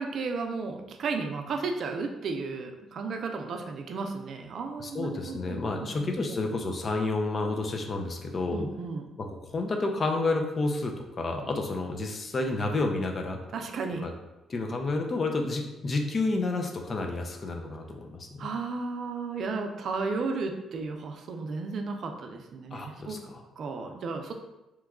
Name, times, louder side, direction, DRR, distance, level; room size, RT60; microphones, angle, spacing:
voice 1, 0.0-6.4 8.5-9.1 13.5-14.1 18.4-23.2 23.6-24.3, right 4 dB, 60° right, 5 dB, 0.4 m, -34 dB
voice 2, 4.8-8.7 9.2-13.4 14.0-14.1 14.5-18.5 22.7-23.4, left 3 dB, 40° left, 3 dB, 0.5 m, -30 dB
3.0 x 2.2 x 3.5 m, 0.98 s
cardioid pair, 90°, 0 cm